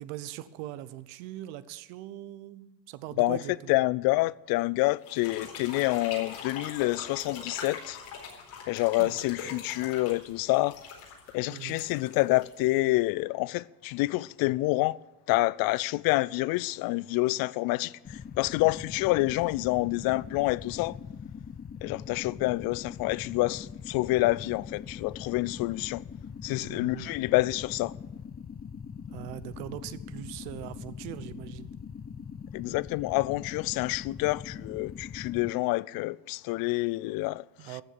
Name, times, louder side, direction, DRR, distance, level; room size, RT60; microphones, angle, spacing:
voice 1, 0.0-3.8 9.0-9.2 9.5-9.7 11.5-11.8 26.6-27.1 29.1-31.7 37.6-37.8, right 14 dB, 75° right, 0.9 m, -41 dB
voice 2, 3.7-8.0 8.7-10.8 11.3-15.0 15.3-21.0 21.8-26.0 26.4-27.9 32.5-37.4, left 20 dB, 60° left, 0.5 m, -27 dB
sound 1, 5.0-13.0, left 6 dB, 75° left, 4.2 m, -42 dB
sound 2, 18.0-35.5, left 7 dB, 25° left, 0.7 m, -42 dB
13.5 x 7.3 x 9.6 m
supercardioid pair, 85°, 40 cm